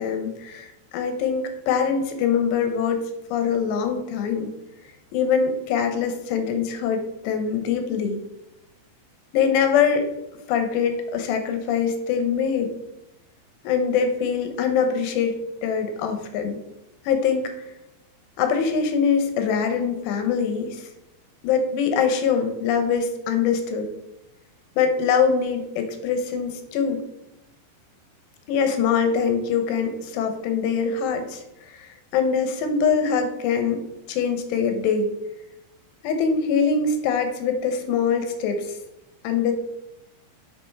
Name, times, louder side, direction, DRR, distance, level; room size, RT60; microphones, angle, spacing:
voice 1, 0.0-3.0 3.3-4.5 5.1-8.2 9.3-10.1 10.5-12.7 13.6-15.3 15.6-16.6 17.1-17.5 18.4-20.9 21.4-23.9 24.8-27.0 28.5-31.4 31.7-33.8 34.1-35.1 36.0-38.8 39.2-39.5, left 6 dB, 75° left, 6 dB, 2.8 m, -23 dB
8.6 x 5.9 x 3.4 m, 0.92 s
omnidirectional pair, 5.4 m